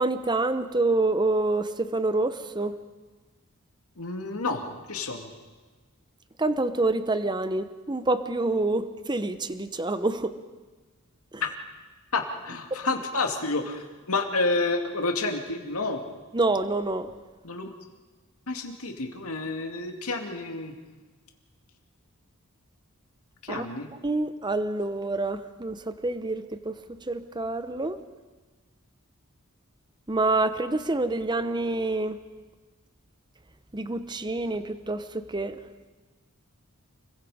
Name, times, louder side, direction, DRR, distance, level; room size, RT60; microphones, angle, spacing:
voice 1, 0.0-2.8 6.4-10.3 11.3-11.4 16.3-17.1 23.5-23.7 24.0-28.0 30.1-32.2 33.7-35.6, right 2 dB, 20° right, 11 dB, 0.8 m, -27 dB
voice 2, 4.0-5.3 11.4-11.5 12.1-16.0 17.4-17.7 18.5-20.7 23.4-23.9, left 3 dB, 80° left, 4 dB, 2.4 m, -29 dB
30.0 x 22.0 x 5.0 m, 1.3 s
head